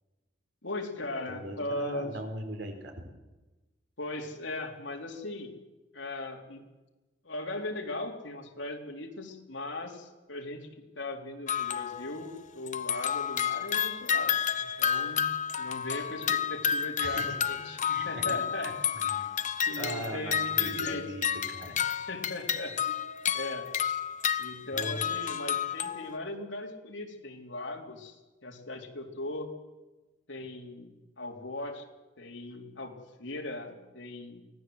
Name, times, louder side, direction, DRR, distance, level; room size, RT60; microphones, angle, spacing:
voice 1, 0.6-2.2 4.0-5.5 5.9-6.6 7.2-10.7 10.9-15.3 15.6-18.7 19.7-21.1 21.7-21.8 22.1-23.0 23.3-23.7 24.4-28.2 28.4-29.5 30.3-31.9 32.2-34.4, left 2 dB, 70° left, 1 dB, 3.6 m, -38 dB
voice 2, 1.3-2.9 17.0-17.4 17.9-19.3 19.8-21.7 24.7-25.0, right 1 dB, 70° right, 4 dB, 4.7 m, -40 dB
sound 1, 11.5-12.3 12.7-26.2, left 8 dB, 40° left, 0.9 m, -31 dB
24.5 x 17.5 x 8.0 m, 1.1 s
head